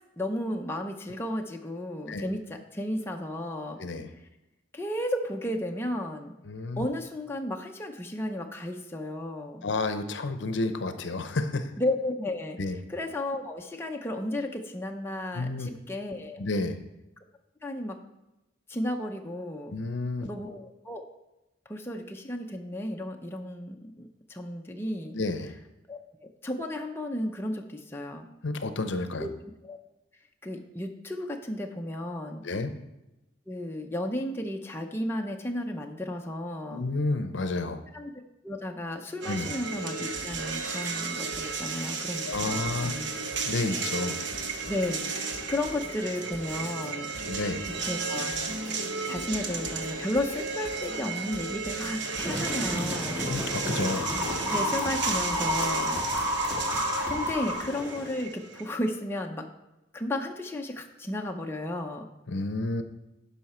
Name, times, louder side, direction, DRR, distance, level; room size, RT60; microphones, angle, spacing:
voice 1, 0.2-3.8 4.7-6.3 6.8-9.7 11.8-16.4 17.6-18.0 18.7-19.7 20.2-21.0 21.7-25.2 25.9-28.3 29.2-29.3 29.6-29.8 30.4-32.4 33.5-36.8 37.9-38.1 38.4-42.5 42.8-43.1 44.7-47.1 47.8-48.3 49.0-53.2 54.5-56.0 57.1-59.5 59.9-62.1, left 1 dB, 10° left, 2 dB, 0.6 m, -33 dB
voice 2, 3.8-4.1 6.5-6.9 9.6-11.7 12.6-12.8 15.3-15.7 16.4-16.8 19.7-20.3 25.1-25.5 28.4-29.3 32.4-32.8 36.7-37.8 39.3-39.5 42.3-42.9 43.5-44.2 47.3-47.6 53.3-54.1 62.3-62.8, left 2 dB, 70° left, 9 dB, 0.7 m, -30 dB
sound 1, 39.2-58.8, right 4 dB, 65° right, 0.9 m, -34 dB
sound 2, 40.1-40.9 41.2-41.9 42.1-42.9 43.1-43.9 44.1-44.9 45.2-45.9 46.1-46.9 47.1-47.9 48.1-48.9 49.1-49.9 50.1-50.4 50.6-50.9 51.1-51.9 52.1-52.4 52.6-52.9 53.2-53.9 54.1-54.9 55.1-55.9 56.1-56.4, equal, 90° right, 1.9 m, -47 dB
sound 3, 52.2-58.2, left 1 dB, 10° right, 1.8 m, -31 dB
11.0 x 5.6 x 4.3 m, 0.96 s
head